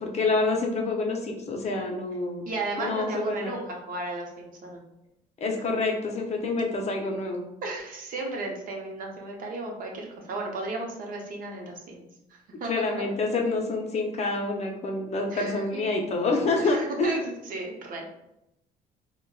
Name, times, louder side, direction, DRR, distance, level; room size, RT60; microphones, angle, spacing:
voice 1, 0.0-2.4 2.8-3.6 5.4-7.4 12.7-17.1, left 3 dB, 40° left, 1 dB, 0.5 m, -27 dB
voice 2, 2.5-4.8 7.6-12.1 12.6-13.1 15.3-15.8 16.6-18.1, right 2 dB, 55° right, 0 dB, 0.7 m, -34 dB
3.4 x 2.1 x 2.3 m, 0.86 s
cardioid pair, 110°, 17 cm